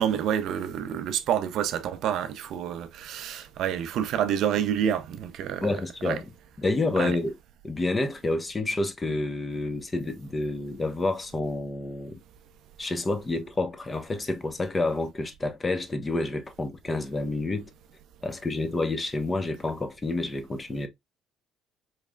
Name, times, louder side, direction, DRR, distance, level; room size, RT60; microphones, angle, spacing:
voice 1, 0.0-5.7 6.0-6.2 7.0-7.2, right 9 dB, 70° right, 0.5 m, -28 dB
voice 2, 5.6-6.2 6.6-7.3 7.6-12.2 12.8-17.7 18.2-20.9, left 2 dB, 25° left, 0.8 m, -29 dB
4.0 x 3.2 x 2.3 m
supercardioid pair, 80°, 0 cm